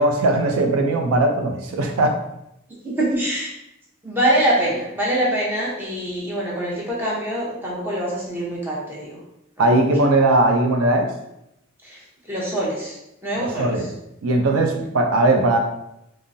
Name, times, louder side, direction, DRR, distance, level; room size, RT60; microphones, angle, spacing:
voice 1, 0.0-2.2 9.6-11.1 13.4-13.9 14.2-15.6, right 2 dB, 75° right, 3 dB, 0.4 m, -19 dB
voice 2, 2.8-3.5 4.0-9.2 9.6-9.7 10.0-10.1 11.8-12.0 12.3-13.0 13.2-13.9, right 1 dB, 10° right, -6 dB, 0.7 m, -24 dB
3.6 x 2.0 x 2.6 m, 0.84 s
head